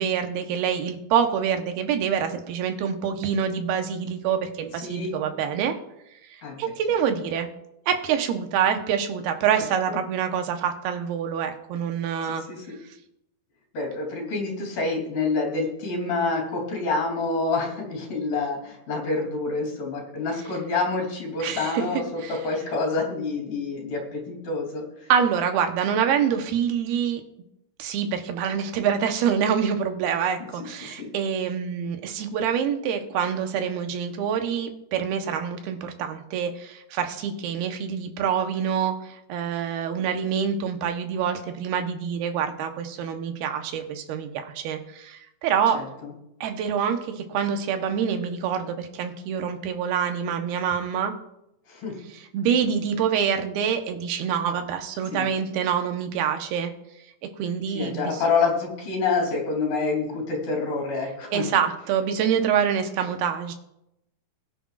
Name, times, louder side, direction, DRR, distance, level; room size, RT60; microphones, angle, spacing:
voice 1, 0.0-5.7 6.3-7.5 7.9-12.4 21.4-21.8 22.2-22.3 25.1-27.2 27.8-45.8 46.4-51.1 52.3-56.7 57.4-58.2 61.3-63.5, right 7 dB, 80° right, 6 dB, 2.9 m, -26 dB
voice 2, 4.8-5.4 6.4-6.6 9.5-10.0 12.2-12.8 13.7-25.1 30.6-31.1 45.7-46.1 51.7-52.0 55.1-55.3 57.7-61.5, left 3 dB, 60° left, 0 dB, 4.7 m, -28 dB
21.0 x 9.9 x 2.5 m, 0.82 s
omnidirectional pair, 4.4 m